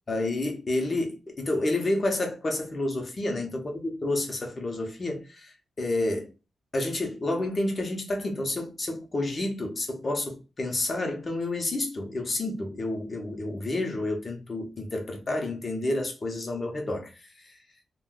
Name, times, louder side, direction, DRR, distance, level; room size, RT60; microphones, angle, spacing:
voice 1, 0.1-6.3 6.7-17.5, left 2 dB, 30° left, 0.7 m, -30 dB
2.5 x 2.2 x 3.6 m
wide cardioid pair, 165°, 0 cm